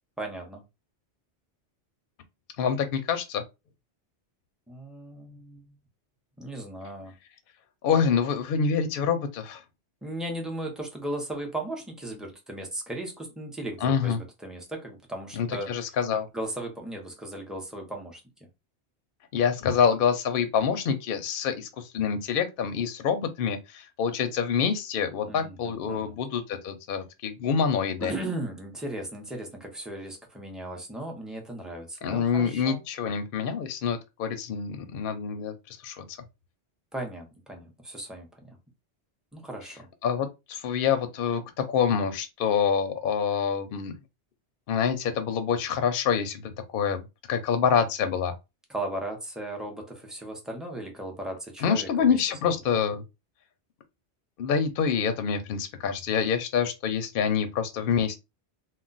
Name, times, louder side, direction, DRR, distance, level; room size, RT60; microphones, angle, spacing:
voice 1, 0.2-0.6 4.7-5.8 6.4-7.1 10.0-15.7 16.3-18.2 25.3-26.2 28.0-32.8 36.9-38.6 39.3-39.9 48.7-52.2 52.4-52.8, right 1 dB, ahead, 0.5 m, -36 dB
voice 2, 2.6-3.4 7.8-9.6 13.8-14.2 15.3-16.3 19.3-28.1 32.0-36.0 40.0-43.9 44.7-48.3 51.6-53.0 54.4-58.1, left 7 dB, 60° left, 0.7 m, -26 dB
2.3 x 2.2 x 3.9 m
omnidirectional pair, 1.2 m